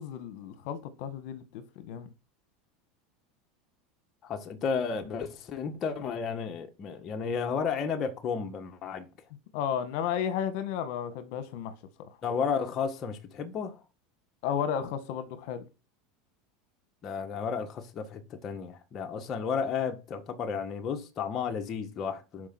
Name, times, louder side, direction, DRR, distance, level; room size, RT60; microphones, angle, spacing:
voice 1, 0.0-2.1 9.5-11.7 14.4-15.6, left 8 dB, 65° left, 1.7 m, -33 dB
voice 2, 4.2-9.1 12.2-13.8 17.0-22.5, left 6 dB, 35° left, 1.5 m, -33 dB
11.5 x 5.0 x 6.1 m
supercardioid pair, 135°, 0 cm